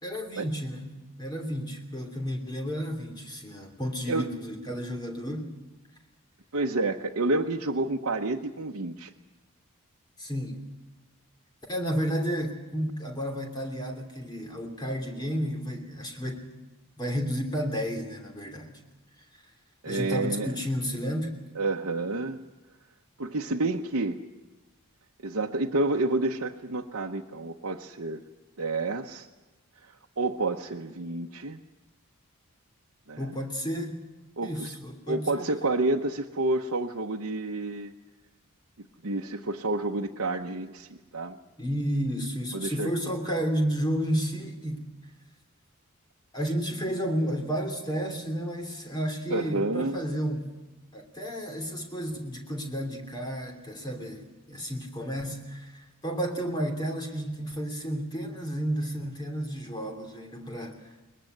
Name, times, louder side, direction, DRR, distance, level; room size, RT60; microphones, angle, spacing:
voice 1, 0.0-5.5 10.2-10.6 11.7-16.4 17.0-18.7 19.8-21.3 33.2-34.0 34.4-35.5 41.6-44.8 46.3-50.5 50.9-60.9, equal, 20° left, 3 dB, 3.1 m, -32 dB
voice 2, 6.5-9.1 19.8-20.5 21.5-22.4 23.2-24.2 25.2-28.2 28.6-29.3 30.2-31.6 33.1-33.3 34.4-34.7 35.1-37.9 39.0-41.4 42.5-42.9 49.3-50.0, right 2 dB, 65° right, 0 dB, 1.0 m, -29 dB
22.0 x 20.5 x 7.9 m, 1.1 s
head